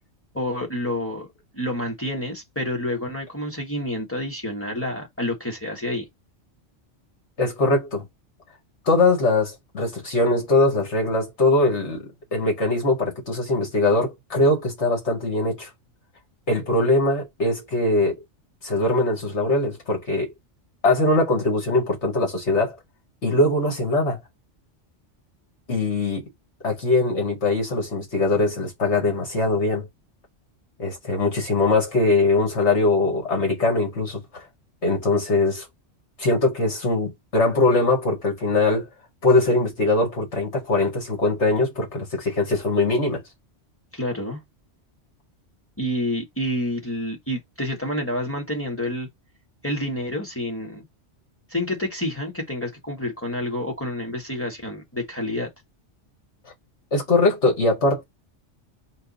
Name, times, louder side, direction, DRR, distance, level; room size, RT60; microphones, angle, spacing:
voice 1, 0.3-6.1 43.9-44.4 45.8-49.1 49.6-50.8 51.5-55.5, left 1 dB, 10° left, 1.2 m, -28 dB
voice 2, 7.4-8.0 8.9-15.7 16.5-18.2 18.6-20.3 20.8-22.8 23.2-24.2 25.7-26.3 26.6-29.9 30.8-34.4 34.8-35.6 36.2-38.9 39.2-43.2 56.9-58.0, left 2 dB, 70° left, 2.1 m, -21 dB
4.4 x 2.6 x 4.0 m
omnidirectional pair, 1.2 m